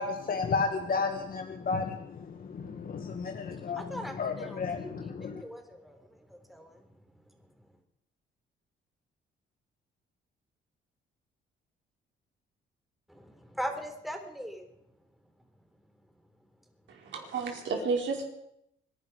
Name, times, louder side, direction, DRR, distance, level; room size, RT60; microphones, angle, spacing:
voice 1, 0.0-3.8 4.2-5.4, left 4 dB, 45° left, 5 dB, 1.5 m, -32 dB
voice 2, 3.6-6.9 7.3-7.7 13.1-14.7, equal, ahead, 4 dB, 3.7 m, -41 dB
voice 3, 16.9-18.2, right 4 dB, 70° right, 1 dB, 4.6 m, -32 dB
26.0 x 11.0 x 5.0 m, 0.77 s
cardioid pair, 90°, 20 cm